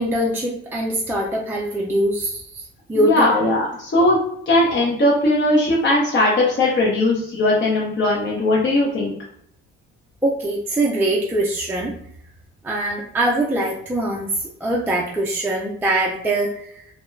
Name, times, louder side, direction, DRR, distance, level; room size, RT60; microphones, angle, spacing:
voice 1, 0.0-2.6 2.9-3.4 10.2-11.9 12.6-16.8, right 1 dB, 5° right, -3 dB, 0.4 m, -23 dB
voice 2, 3.0-4.2 4.5-9.1, left 1 dB, 40° left, -4 dB, 0.7 m, -18 dB
2.3 x 2.1 x 3.1 m, 0.68 s
cardioid pair, 90°, 30 cm